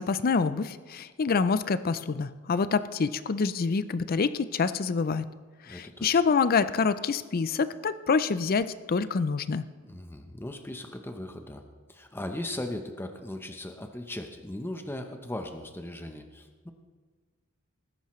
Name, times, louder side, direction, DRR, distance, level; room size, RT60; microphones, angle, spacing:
voice 1, 0.0-5.3 5.7-9.7, left 5 dB, 45° left, 14 dB, 0.5 m, -26 dB
voice 2, 5.7-6.2 9.8-11.6 11.9-16.7, left 1 dB, 10° left, 5 dB, 0.8 m, -38 dB
19.0 x 10.5 x 3.1 m, 1.5 s
head